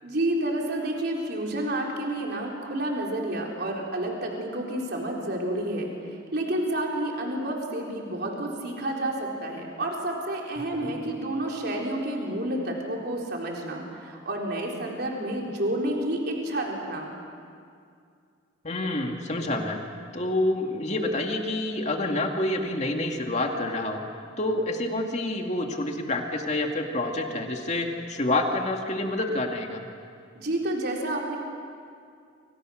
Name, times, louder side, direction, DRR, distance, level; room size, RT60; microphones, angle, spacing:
voice 1, 0.0-17.2 30.3-31.4, right 1 dB, 55° right, -1 dB, 4.1 m, -30 dB
voice 2, 18.6-19.8 20.1-24.0 24.4-29.8, left 2 dB, 35° left, 3 dB, 2.3 m, -28 dB
29.5 x 25.5 x 6.5 m, 2.3 s
head